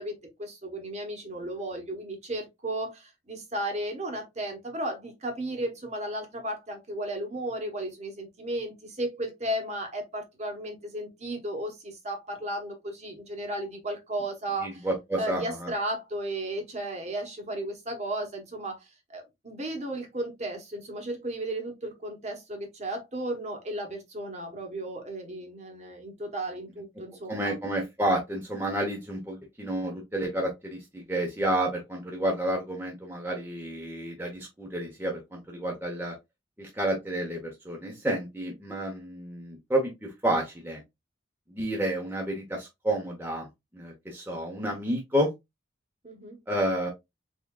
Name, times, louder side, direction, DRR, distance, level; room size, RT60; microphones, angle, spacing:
voice 1, 0.0-14.9 15.2-27.5 46.0-46.4, right 1 dB, 35° right, 1.0 m, -34 dB
voice 2, 14.6-15.7 27.3-36.1 36.6-40.8 41.5-43.5 43.7-45.3 46.5-46.9, right 1 dB, 10° right, 0.8 m, -30 dB
3.6 x 3.6 x 2.3 m
head